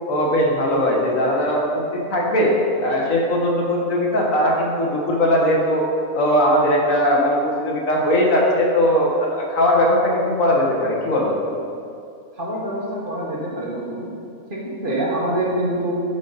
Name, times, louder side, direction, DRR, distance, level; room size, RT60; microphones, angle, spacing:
voice 1, 0.1-5.8 6.1-11.3, equal, 70° left, -2 dB, 1.7 m, -19 dB
voice 2, 12.3-14.1 14.5-16.0, right 1 dB, 40° right, -6 dB, 1.6 m, -25 dB
11.0 x 5.4 x 4.0 m, 2.5 s
omnidirectional pair, 1.5 m